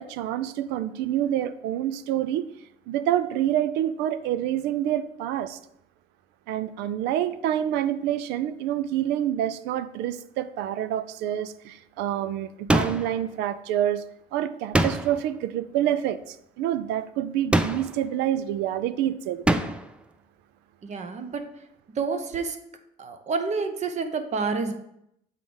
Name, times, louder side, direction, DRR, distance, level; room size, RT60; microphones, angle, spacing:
voice 1, 0.0-2.4 2.9-5.6 6.5-14.0 14.3-19.4, right 11 dB, 90° right, 14 dB, 0.4 m, -27 dB
sound 1, 12.7-13.2 14.7-15.3 17.5-18.1 19.5-19.9, right 1 dB, 5° right, 0.4 m, -24 dB
voice 2, 20.8-21.5 22.0-22.6 23.0-24.7, right 4 dB, 45° right, 7 dB, 0.8 m, -28 dB
7.5 x 3.7 x 3.8 m, 0.77 s
cardioid pair, 110°, 17 cm